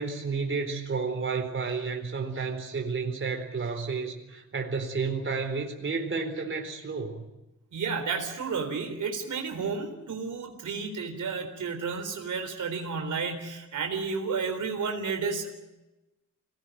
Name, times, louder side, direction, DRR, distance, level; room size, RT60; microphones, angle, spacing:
voice 1, 0.0-7.2, right 4 dB, 40° right, 4 dB, 4.0 m, -31 dB
voice 2, 7.7-15.5, right 5 dB, 75° right, 4 dB, 4.0 m, -32 dB
25.5 x 18.5 x 9.3 m, 1.0 s
wide cardioid pair, 120°, 30 cm